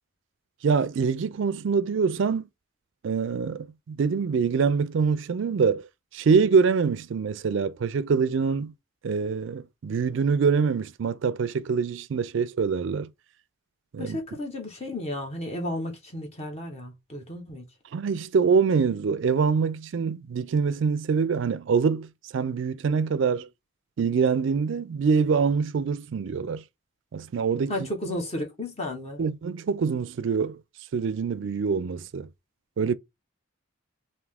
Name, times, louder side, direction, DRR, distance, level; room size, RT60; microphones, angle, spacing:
voice 1, 0.6-2.5 3.0-5.9 6.1-8.7 9.0-13.1 13.9-14.2 17.9-23.5 24.0-26.6 27.1-27.7 29.2-30.6 30.9-32.3 32.8-32.9, right 5 dB, 65° right, 0.4 m, -25 dB
voice 2, 14.0-17.6 27.7-29.3, left 1 dB, 30° left, 0.8 m, -33 dB
3.5 x 2.7 x 3.3 m
head